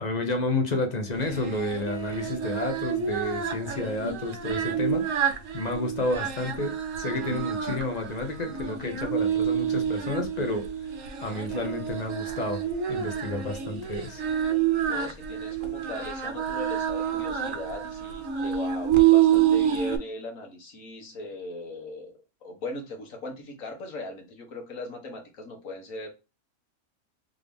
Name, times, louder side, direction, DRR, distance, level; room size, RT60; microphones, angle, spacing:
voice 1, 0.0-10.7 11.2-12.6 12.9-14.2, left 2 dB, 35° left, 0.8 m, -30 dB
Singing, 1.2-20.0, right 9 dB, 65° right, 1.2 m, -28 dB
voice 2, 14.9-22.1 22.4-26.1, left 1 dB, 70° left, 1.6 m, -39 dB
3.7 x 3.6 x 3.5 m
omnidirectional pair, 1.5 m